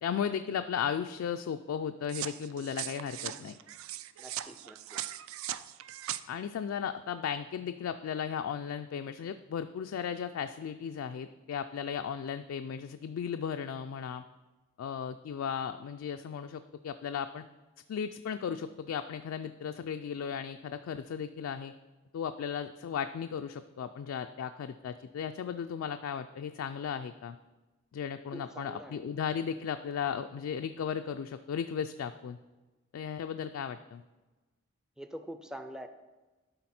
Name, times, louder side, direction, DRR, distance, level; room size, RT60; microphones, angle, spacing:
voice 1, 0.0-3.6 6.3-14.2 14.8-17.4 17.9-21.7 22.1-27.4 27.9-32.4 32.9-34.0, left 7 dB, 75° left, 8 dB, 0.3 m, -36 dB
sound 1, 2.1-6.2, right 13 dB, 80° right, 0.3 m, -39 dB
voice 2, 4.2-5.0 28.3-29.1 35.0-35.9, right 1 dB, 5° right, 8 dB, 0.4 m, -45 dB
12.0 x 4.1 x 4.2 m, 1.2 s
head